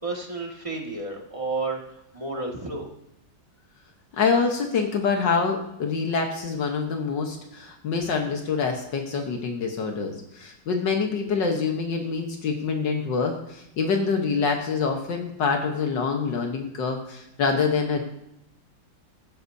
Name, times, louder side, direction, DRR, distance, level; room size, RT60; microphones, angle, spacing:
voice 1, 0.0-2.9, right 3 dB, 15° right, -1 dB, 1.9 m, -31 dB
voice 2, 4.1-18.0, left 5 dB, 75° left, 2 dB, 1.9 m, -26 dB
16.5 x 15.0 x 2.7 m, 0.82 s
omnidirectional pair, 2.0 m